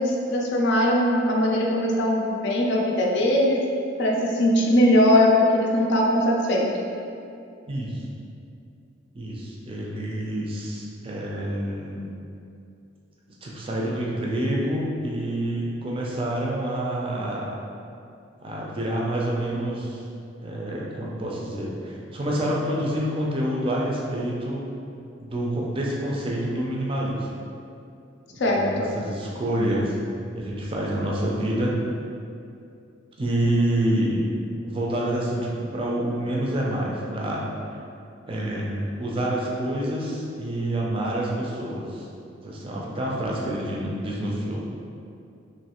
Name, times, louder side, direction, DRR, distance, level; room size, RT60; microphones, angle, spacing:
voice 1, 0.0-3.6 4.0-6.7 28.4-28.9, left 1 dB, 60° left, -1 dB, 0.4 m, -20 dB
voice 2, 7.7-8.0 9.1-12.0 13.4-17.5 18.4-20.0 20.4-24.6 25.2-27.3 28.3-29.9 30.3-31.8 33.2-34.3 34.6-37.8 38.3-42.1 42.4-44.6, right 1 dB, 25° right, -4 dB, 0.4 m, -27 dB
3.1 x 2.6 x 2.9 m, 2.5 s
head